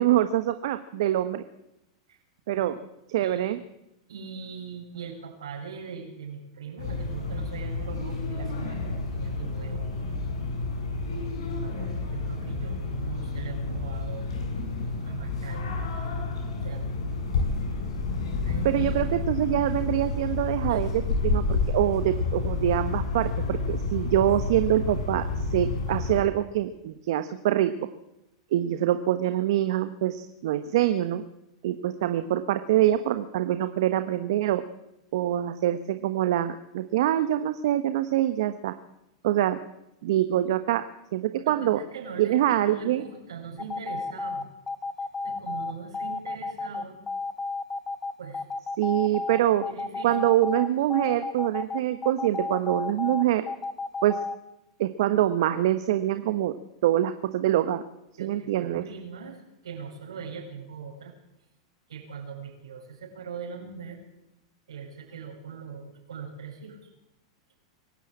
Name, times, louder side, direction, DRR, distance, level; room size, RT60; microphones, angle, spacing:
voice 1, 0.0-1.4 2.5-2.7 3.1-3.6 18.6-27.7 28.5-31.2 31.6-34.6 35.1-38.7 39.2-39.6 40.0-40.8 41.1-41.8 42.2-43.0 48.8-49.6 50.0-53.4 54.0-54.2 54.8-56.6 56.8-57.8 58.2-58.8, right 13 dB, 65° right, 10 dB, 1.2 m, -25 dB
voice 2, 3.2-3.6 4.1-9.9 11.6-14.3 15.0-15.7 16.6-16.9 18.4-18.9 20.7-20.8 41.4-44.5 45.2-47.0 48.2-48.4 49.3-50.2 58.2-61.1 61.9-64.0 64.7-66.8, right 6 dB, 80° right, 1 dB, 7.2 m, -41 dB
sound 1, 6.8-26.2, left 3 dB, 70° left, 8.0 m, -30 dB
sound 2, 43.6-54.4, left 3 dB, 15° left, 1.6 m, -32 dB
23.5 x 13.5 x 8.8 m, 0.87 s
hypercardioid pair, 105°, 3 cm